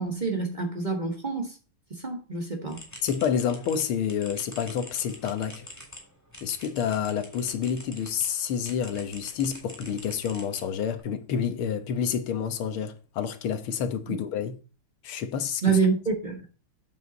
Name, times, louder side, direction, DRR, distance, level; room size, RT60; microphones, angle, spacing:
voice 1, 0.0-1.6 1.9-2.8 14.1-14.2 15.6-16.4, right 5 dB, 25° right, 1.4 m, -27 dB
sound 1, 2.7-8.3 8.6-11.0, equal, 10° left, 2.9 m, -45 dB
voice 2, 3.0-5.7 6.4-14.6 15.0-15.8, left 8 dB, 85° left, 1.9 m, -29 dB
8.1 x 7.3 x 4.0 m
omnidirectional pair, 2.3 m